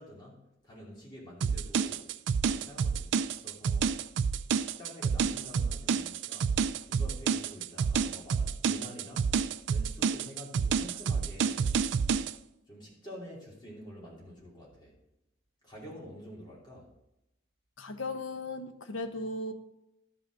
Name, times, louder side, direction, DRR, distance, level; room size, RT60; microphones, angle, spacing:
voice 1, 0.0-2.1 2.4-4.0 4.5-6.5 6.9-9.4 9.7-11.7 12.7-14.9 15.6-16.9, equal, 25° left, -5 dB, 2.9 m, -48 dB
sound 1, 1.4-12.3, right 6 dB, 65° right, 0.4 m, -29 dB
voice 2, 17.8-19.5, left 2 dB, 80° left, 8 dB, 0.9 m, -36 dB
12.5 x 5.6 x 4.0 m, 0.89 s
head